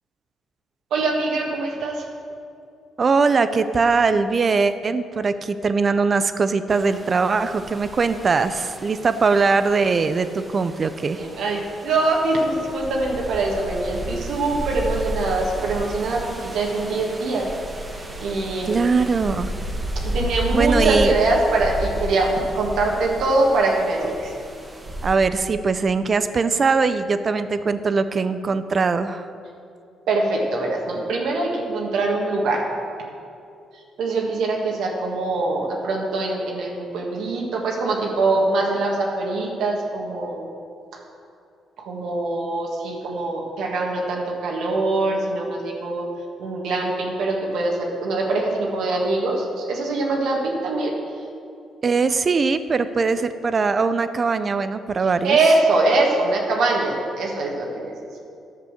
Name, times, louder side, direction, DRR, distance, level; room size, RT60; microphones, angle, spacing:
voice 1, 0.9-2.0 11.2-17.5 18.2-18.7 20.0-24.3 30.1-32.6 34.0-40.5 41.8-46.1 46.4-50.9 55.2-57.9, right 2 dB, 80° right, -1 dB, 1.7 m, -23 dB
voice 2, 3.0-11.3 18.7-19.5 20.5-21.1 25.0-29.3 51.8-55.4, right 4 dB, 40° right, 12 dB, 0.6 m, -21 dB
sound 1, 6.7-25.2, right 1 dB, 20° right, 1.3 m, -32 dB
10.5 x 6.8 x 6.5 m, 2.5 s
cardioid pair, 90°, 0 cm